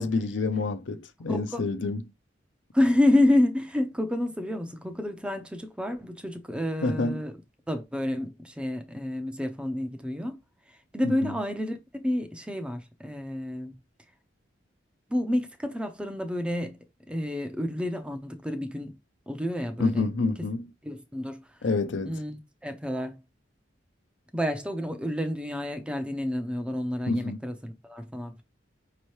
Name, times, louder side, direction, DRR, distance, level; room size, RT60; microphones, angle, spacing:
voice 1, 0.0-2.0 6.8-7.2 11.0-11.2 19.8-20.7 21.6-22.1 27.1-27.4, left 3 dB, 70° left, 0.6 m, -28 dB
voice 2, 1.3-1.7 2.7-7.3 7.7-10.4 10.9-13.7 15.1-16.8 17.1-19.0 19.3-20.1 20.8-21.4 22.0-23.2 24.3-28.4, left 1 dB, 5° right, 0.5 m, -29 dB
5.4 x 2.9 x 3.1 m
head